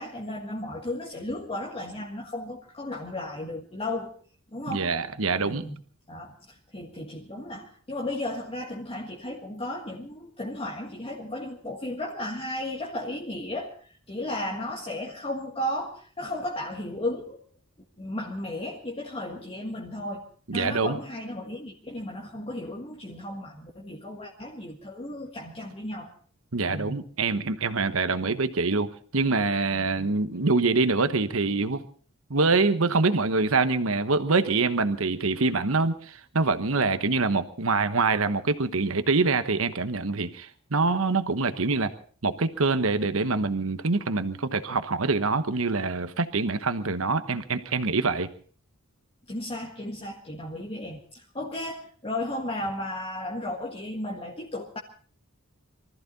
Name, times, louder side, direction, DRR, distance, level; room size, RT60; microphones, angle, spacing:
voice 1, 0.0-4.1 4.5-4.9 5.4-5.7 6.1-13.7 14.1-17.4 18.0-20.2 20.5-26.1 26.6-27.0 28.2-28.4 29.7-30.1 49.3-54.8, left 1 dB, 25° left, -1 dB, 1.6 m, -34 dB
voice 2, 4.7-5.7 20.5-21.0 26.5-28.9 29.1-31.8 32.3-41.9 42.2-48.3, right 3 dB, 70° right, 10 dB, 1.1 m, -25 dB
24.0 x 14.5 x 4.2 m, 0.43 s
head